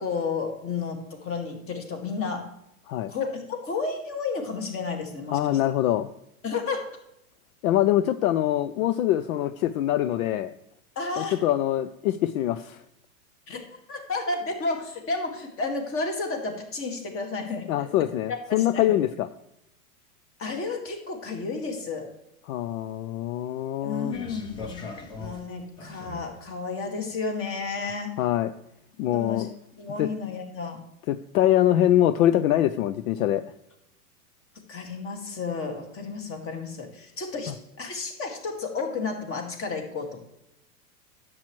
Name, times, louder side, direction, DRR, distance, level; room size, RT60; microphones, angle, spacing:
voice 1, 0.0-2.5 3.1-5.4 6.4-6.9 11.0-11.4 13.5-17.9 18.5-19.0 20.4-22.1 23.8-28.1 29.1-29.5 29.8-30.8 34.7-37.5 37.8-40.2, left 4 dB, 30° left, 4 dB, 1.9 m, -32 dB
voice 2, 5.3-6.1 7.6-10.5 11.2-12.8 17.7-19.3 22.5-24.1 28.2-28.5 29.0-29.5 30.0-30.1 31.1-33.4, left 12 dB, 65° left, 12 dB, 0.6 m, -24 dB
sound 1, 24.1-26.4 27.1-27.2, left 3 dB, 10° left, 0.3 m, -40 dB
10.0 x 7.6 x 3.1 m, 0.83 s
hypercardioid pair, 120°, 45 cm